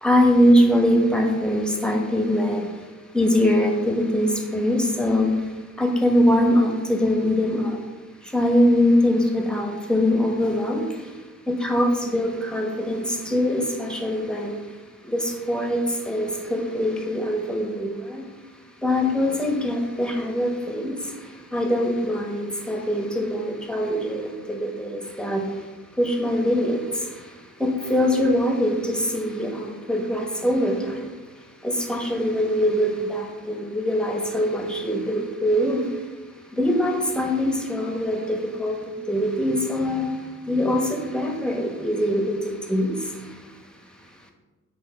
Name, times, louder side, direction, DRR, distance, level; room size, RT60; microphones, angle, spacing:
voice 1, 0.0-2.7 3.1-5.3 5.8-7.8 8.3-10.8 11.5-14.6 15.1-18.2 18.8-21.0 21.5-25.4 26.0-27.1 27.6-31.1 31.6-35.9 36.5-38.8 39.1-40.1 40.5-43.1, left 1 dB, ahead, 2 dB, 1.1 m, -22 dB
9.2 x 4.9 x 4.8 m, 1.3 s
wide cardioid pair, 150°, 34 cm